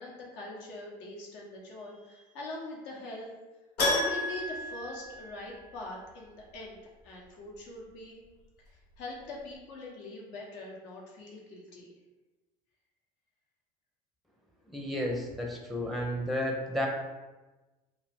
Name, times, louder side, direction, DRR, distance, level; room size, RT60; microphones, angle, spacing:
voice 1, 0.0-3.3 3.9-6.8 7.0-8.2 8.7-11.9, left 2 dB, 65° left, -2 dB, 1.0 m, -43 dB
Keyboard (musical), 3.8-5.8 6.1-6.2 8.9-9.0 9.2-9.3, left 1 dB, 90° left, 0.8 m, -31 dB
voice 2, 14.7-16.9, left 1 dB, ahead, 0 dB, 0.6 m, -32 dB
2.6 x 2.5 x 3.4 m, 1.1 s
hypercardioid pair, 70°, 20 cm